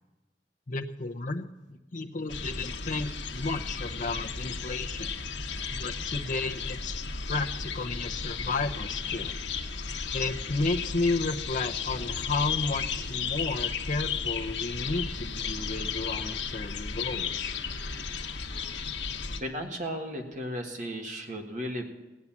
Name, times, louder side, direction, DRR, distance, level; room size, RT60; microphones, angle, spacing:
voice 1, 0.7-5.1 5.7-7.0 7.3-9.4 10.1-17.6 19.6-19.7, left 3 dB, 45° left, 3 dB, 0.8 m, -32 dB
sound 1, 2.3-19.4, left 5 dB, 80° left, 1.2 m, -34 dB
voice 2, 19.4-21.9, equal, 45° right, 3 dB, 1.6 m, -35 dB
16.5 x 9.6 x 7.3 m, 1.1 s
head